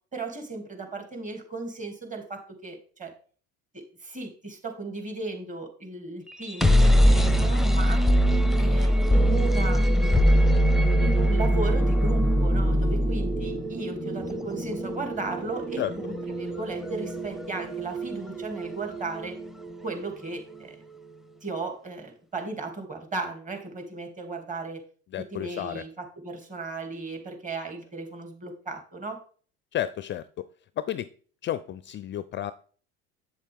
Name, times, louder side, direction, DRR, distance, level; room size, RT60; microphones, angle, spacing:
voice 1, 0.1-3.1 3.7-8.0 8.6-10.5 11.0-19.4 19.8-20.8 21.4-24.9 25.3-29.2, right 3 dB, 20° right, 4 dB, 2.7 m, -36 dB
sound 1, 6.3-20.2, equal, ahead, 0.8 m, -23 dB
voice 2, 25.1-25.9 29.7-30.3 30.8-31.1 31.4-32.5, left 12 dB, 35° left, 15 dB, 0.4 m, -31 dB
8.0 x 7.3 x 3.6 m, 0.43 s
hypercardioid pair, 75°, 34 cm